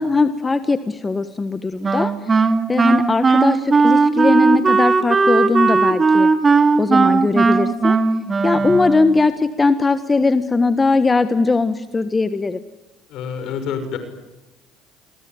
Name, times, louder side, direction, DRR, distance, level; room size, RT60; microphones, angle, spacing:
voice 1, 0.0-2.4 2.7-6.3 6.8-8.0 8.4-12.6, left 3 dB, 20° left, 11 dB, 1.4 m, -19 dB
Wind instrument woodwind instrument, 1.8-9.3, right 4 dB, 30° right, 2.1 m, -16 dB
voice 2, 13.1-14.0, left 7 dB, 65° left, 9 dB, 6.2 m, -28 dB
28.5 x 21.0 x 9.6 m, 1.0 s
supercardioid pair, 80°, 0 cm